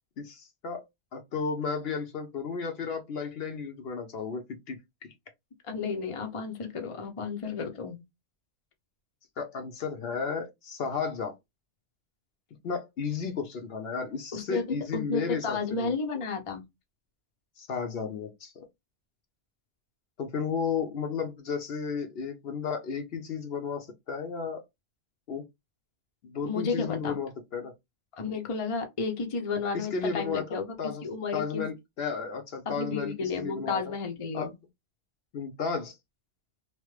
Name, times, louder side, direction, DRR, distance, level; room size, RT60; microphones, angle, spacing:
voice 1, 0.2-0.8 1.1-5.1 9.4-11.3 12.6-15.9 17.6-18.7 20.2-24.6 25.3-25.4 26.2-27.7 29.7-31.0 31.3-33.9 34.3-34.5 35.3-36.0, left 5 dB, 60° left, 0.8 m, -33 dB
voice 2, 5.6-8.0 14.3-14.6 14.9-16.6 26.4-27.2 28.2-30.6 31.0-31.6 32.7-34.5, left 4 dB, 35° left, 0.6 m, -32 dB
3.0 x 2.1 x 3.1 m
omnidirectional pair, 1.2 m